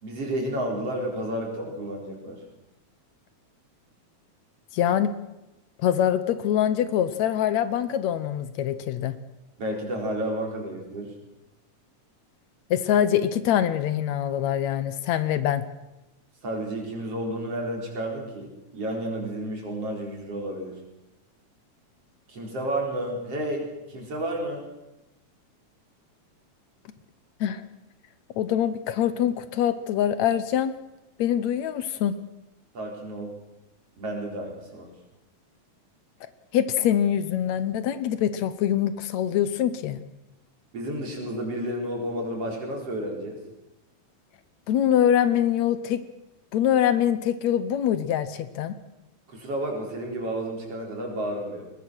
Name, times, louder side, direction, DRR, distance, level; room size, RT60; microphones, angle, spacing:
voice 1, 0.0-2.4 9.6-11.1 16.4-20.7 22.3-24.6 32.7-33.4 34.0-34.9 40.7-43.4 49.3-51.7, right 1 dB, 55° right, 1 dB, 5.3 m, -31 dB
voice 2, 4.7-5.1 5.8-9.2 12.7-15.6 27.4-27.6 28.4-30.8 31.2-32.2 36.5-40.0 44.7-46.0 46.5-48.8, left 10 dB, 75° left, 13 dB, 2.1 m, -24 dB
22.0 x 19.5 x 6.2 m, 0.94 s
omnidirectional pair, 3.3 m